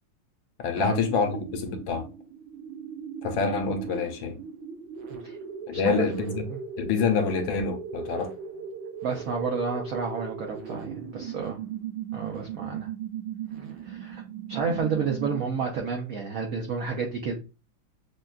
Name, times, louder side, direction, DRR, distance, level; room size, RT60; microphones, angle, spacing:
voice 1, 0.6-2.1 3.2-4.4 5.7-6.4 6.8-8.3, left 5 dB, 75° left, 1.3 m, -27 dB
sound 1, 0.8-15.7, right 7 dB, 70° right, 1.5 m, -38 dB
voice 2, 5.7-6.0 6.5-6.6 9.0-11.6 12.1-12.9 13.8-14.2 14.5-17.3, right 5 dB, 90° right, 0.7 m, -30 dB
6.4 x 2.2 x 2.3 m
omnidirectional pair, 2.3 m